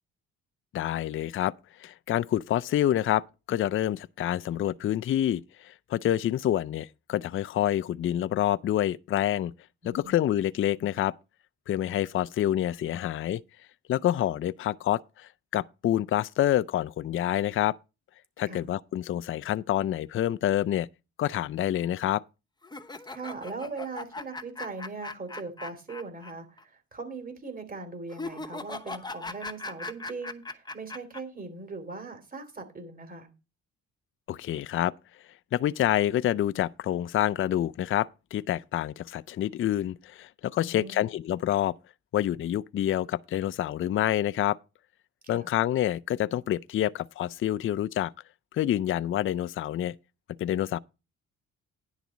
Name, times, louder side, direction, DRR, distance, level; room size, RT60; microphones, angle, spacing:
voice 1, 0.7-1.5 1.8-9.5 9.8-11.1 11.7-13.4 13.9-17.8 18.4-20.9 21.2-22.2 34.3-34.9 35.5-41.7 42.1-44.6 45.3-48.1 48.5-49.9 50.4-50.8, left 12 dB, 45° left, 0.4 m, -27 dB
voice 2, 9.8-10.1 18.4-18.6 23.1-33.3 40.6-41.1 45.3-45.5, right 3 dB, 30° right, 2.9 m, -40 dB
sound 1, 22.6-26.3 26.6-26.7 28.1-31.2, left 3 dB, 15° left, 0.9 m, -39 dB
10.5 x 4.0 x 7.1 m
cardioid pair, 90°, 30 cm